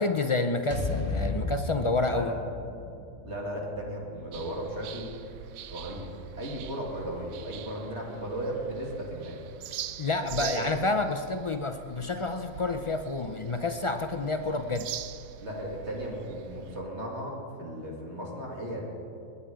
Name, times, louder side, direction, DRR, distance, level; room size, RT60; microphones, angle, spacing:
voice 1, 0.0-2.3 10.0-14.9, left 3 dB, 55° left, 7 dB, 0.3 m, -29 dB
sound 1, 0.7-4.9, left 3 dB, 25° left, 1.9 m, -35 dB
voice 2, 3.2-5.1 5.7-6.1 6.4-9.4 10.2-10.6 15.4-18.9, right 1 dB, 55° right, -2 dB, 2.5 m, -36 dB
sound 2, 4.3-16.8, right 10 dB, 90° right, 1.0 m, -43 dB
20.5 x 9.7 x 5.0 m, 2.6 s
omnidirectional pair, 1.4 m